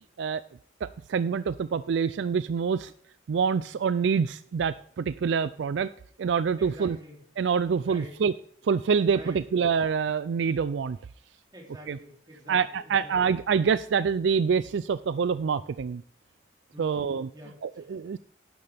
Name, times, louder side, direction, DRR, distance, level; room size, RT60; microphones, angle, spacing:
voice 1, 0.8-2.9 3.3-5.9 6.2-7.0 7.4-8.3 8.6-11.0 11.9-12.0 12.5-16.0 16.8-17.3 17.6-18.2, right 6 dB, 70° right, 15 dB, 0.4 m, -26 dB
voice 2, 6.6-7.2 7.8-8.1 9.1-9.7 11.5-13.1 16.7-17.9, equal, 20° right, -1 dB, 3.2 m, -47 dB
11.5 x 10.5 x 3.5 m, 0.62 s
head